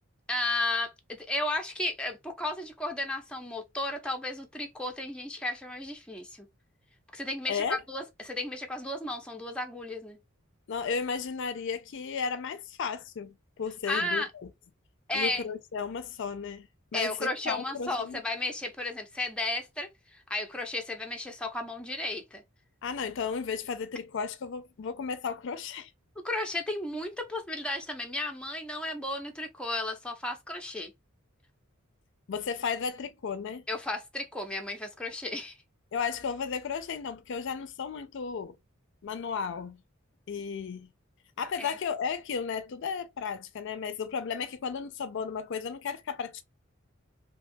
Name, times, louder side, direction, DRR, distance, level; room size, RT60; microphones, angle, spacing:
voice 1, 0.3-6.5 7.1-10.2 13.9-14.3 15.1-15.5 16.9-22.4 26.2-30.9 33.7-35.6 41.6-41.8, left 2 dB, 5° left, 0.5 m, -34 dB
voice 2, 7.5-7.8 10.7-14.2 15.1-16.7 16.9-18.2 22.8-25.9 32.3-33.6 35.9-38.5 39.0-39.8 40.3-40.9 41.4-46.4, left 6 dB, 65° left, 0.4 m, -34 dB
2.8 x 2.2 x 2.5 m
head